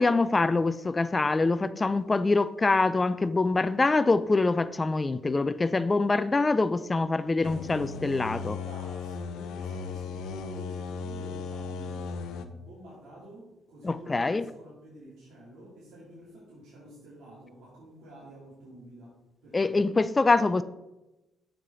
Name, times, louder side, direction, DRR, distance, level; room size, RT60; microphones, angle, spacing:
voice 1, 0.0-8.6 13.8-14.4 19.5-20.6, left 3 dB, 25° left, 0.3 m, -25 dB
sound 1, 7.4-12.5, left 5 dB, 85° left, 0.6 m, -36 dB
voice 2, 8.4-19.2 19.4-19.8, equal, 80° right, 2.9 m, -49 dB
7.3 x 6.6 x 3.9 m
cardioid pair, 90°, 0 cm